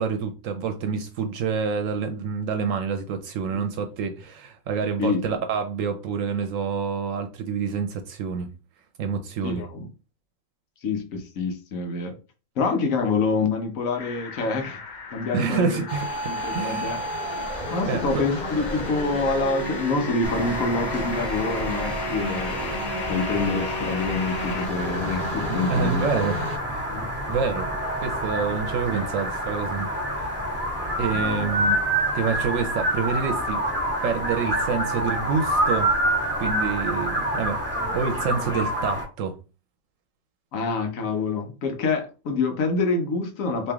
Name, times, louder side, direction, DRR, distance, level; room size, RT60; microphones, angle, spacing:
voice 1, 0.0-8.5 9.0-9.6 15.3-16.1 16.5-16.9 17.9-18.2 25.5-26.4 26.7-26.9 27.3-27.7 28.0-29.9 30.2-30.3 31.0-31.8 32.1-33.6 34.0-35.9 36.4-37.6 37.9-39.4, right 6 dB, 75° right, 0.9 m, -27 dB
voice 2, 9.4-9.9 10.8-12.2 12.6-14.8 15.1-15.8 16.3-17.0 17.7-26.0 26.9-27.1 31.1-31.6 40.5-43.7, left 4 dB, 75° left, 1.2 m, -26 dB
sound 1, 14.0-24.7, left 5 dB, 55° left, 0.5 m, -38 dB
sound 2, 15.9-26.6, right 1 dB, 35° left, 1.0 m, -32 dB
sound 3, 20.2-39.0, right 1 dB, 10° right, 1.4 m, -27 dB
3.1 x 2.7 x 3.4 m
omnidirectional pair, 1.4 m